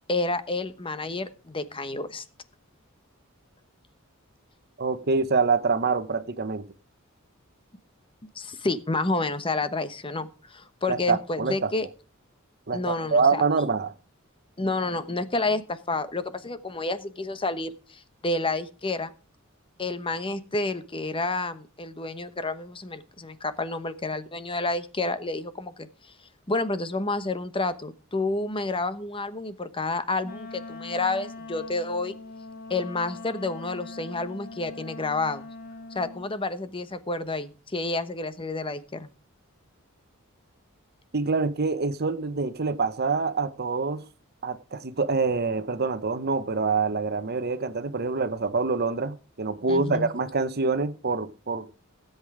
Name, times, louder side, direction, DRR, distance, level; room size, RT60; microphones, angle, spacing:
voice 1, 0.1-2.2 8.3-11.9 12.7-13.4 14.6-19.1 19.8-25.9 26.5-32.1 32.7-35.5 35.9-39.1 49.7-50.1, left 2 dB, 25° left, 1.1 m, -29 dB
voice 2, 4.8-6.6 10.9-11.7 12.7-13.9 41.1-44.0 44.4-51.7, right 4 dB, 50° right, 1.0 m, -26 dB
Wind instrument woodwind instrument, 30.2-36.3, left 3 dB, 45° left, 1.6 m, -41 dB
16.5 x 8.3 x 4.9 m
head